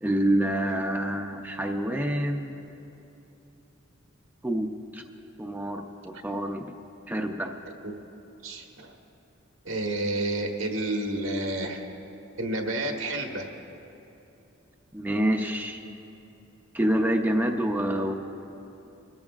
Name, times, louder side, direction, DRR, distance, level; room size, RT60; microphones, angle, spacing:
voice 1, 0.0-2.6 4.4-5.0 5.4-6.7 7.1-7.5 14.9-15.8 16.7-18.1, right 1 dB, 10° right, 2 dB, 0.6 m, -27 dB
voice 2, 8.4-8.9 9.6-11.8 12.4-13.5, right 1 dB, 85° right, 1 dB, 1.4 m, -30 dB
22.0 x 14.0 x 2.4 m, 2.9 s
head